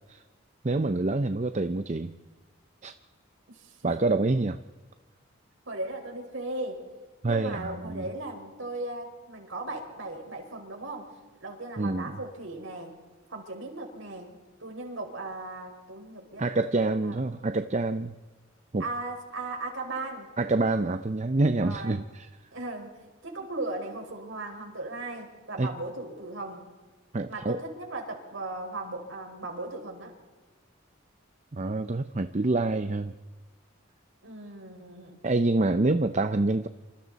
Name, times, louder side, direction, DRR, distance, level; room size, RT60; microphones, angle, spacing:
voice 1, 0.6-2.1 2.8-2.9 3.8-4.6 7.2-8.0 11.8-12.2 16.4-18.1 18.7-18.9 20.4-22.3 25.6-25.7 27.1-27.6 31.5-33.1 35.2-36.7, right 2 dB, 35° right, 10 dB, 0.6 m, -26 dB
voice 2, 3.5-4.0 5.6-6.8 7.3-11.1 11.4-12.9 13.3-14.3 14.6-16.5 17.0-17.2 18.8-20.3 21.6-22.0 22.5-22.9 23.2-26.7 27.3-30.1 34.2-35.2, right 2 dB, 75° right, 2 dB, 4.9 m, -37 dB
27.5 x 26.5 x 4.1 m, 1.3 s
head